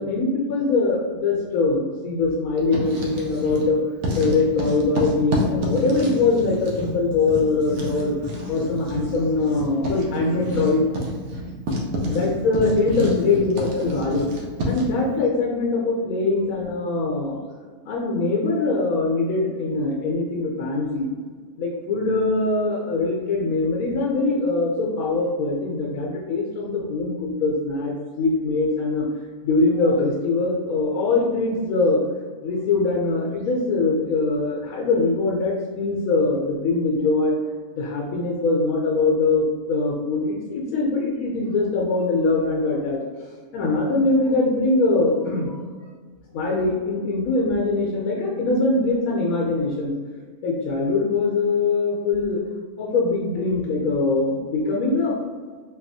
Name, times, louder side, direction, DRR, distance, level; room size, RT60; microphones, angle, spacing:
voice 1, 0.0-3.8 4.2-8.1 8.5-10.9 12.1-14.3 14.6-17.4 17.8-21.1 21.6-29.1 29.4-32.0 32.4-37.4 37.7-43.0 43.5-45.5 46.3-49.9 50.4-52.4 52.8-55.2, left 3 dB, 85° left, -2 dB, 1.1 m, -22 dB
Writing, 2.6-3.7 4.0-15.0, left 1 dB, 80° right, 1.1 m, -29 dB
4.1 x 2.3 x 2.6 m, 1.5 s
omnidirectional pair, 1.5 m